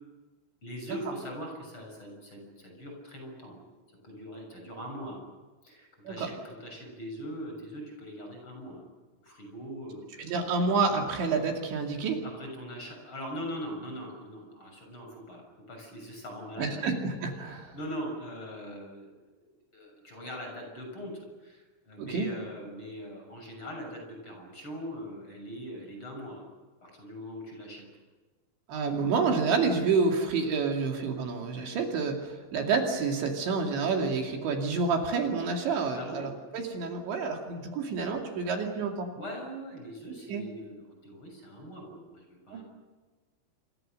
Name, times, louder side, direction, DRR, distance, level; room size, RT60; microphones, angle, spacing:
voice 1, 0.6-3.6 4.0-5.2 5.6-8.8 9.2-10.3 12.2-16.9 17.7-19.1 19.7-26.5 26.8-27.8 35.9-36.3 39.1-42.6, equal, 25° left, 1 dB, 7.2 m, -41 dB
voice 2, 10.2-12.2 16.6-17.8 22.0-22.3 28.7-39.1 40.3-40.4 42.5-42.6, right 4 dB, 65° right, 2 dB, 4.7 m, -29 dB
28.0 x 26.5 x 6.6 m, 1.3 s
omnidirectional pair, 5.7 m